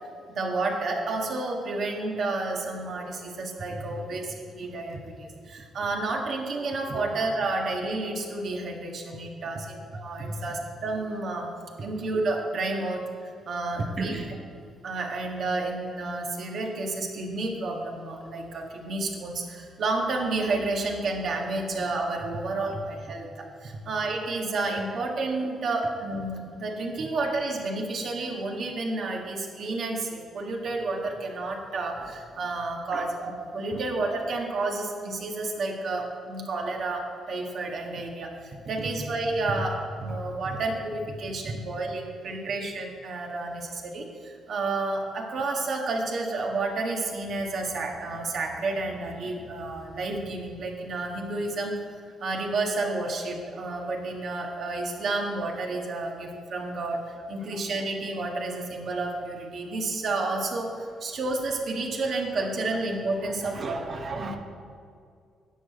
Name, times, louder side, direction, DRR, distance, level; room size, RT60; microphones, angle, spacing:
voice 1, 0.3-11.5 11.8-14.1 14.8-63.8 64.1-64.3, right 2 dB, 60° right, 1 dB, 1.6 m, -31 dB
voice 2, 14.0-14.3 32.9-33.1 33.7-33.8 38.8-38.9 40.5-40.6 41.4-41.6 57.5-57.6 63.4-64.4, right 3 dB, 45° right, 5 dB, 0.9 m, -35 dB
9.9 x 4.9 x 7.9 m, 2.3 s
cardioid pair, 90°, 0 cm